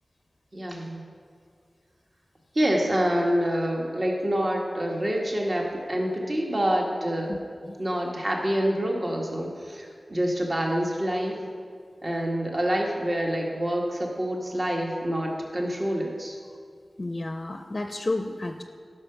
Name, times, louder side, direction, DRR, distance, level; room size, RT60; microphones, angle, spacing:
voice 1, 0.5-1.0 2.5-7.3 7.8-11.4 12.0-16.4, equal, 45° right, -1 dB, 1.5 m, -27 dB
voice 2, 7.3-7.7 17.0-18.6, left 2 dB, 45° left, 6 dB, 0.5 m, -31 dB
11.5 x 5.7 x 5.7 m, 2.1 s
cardioid pair, 50°, 0 cm